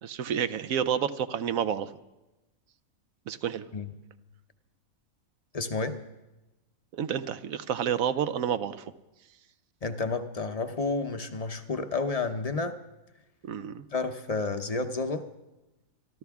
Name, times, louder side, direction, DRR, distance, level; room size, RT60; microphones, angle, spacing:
voice 1, 0.0-1.9 3.3-3.7 6.9-8.8 13.5-13.8, right 8 dB, 80° right, 13 dB, 1.1 m, -29 dB
voice 2, 5.5-5.9 9.8-12.8 13.9-15.2, left 3 dB, 35° left, 8 dB, 0.7 m, -30 dB
26.5 x 12.5 x 3.6 m, 1.0 s
omnidirectional pair, 1.4 m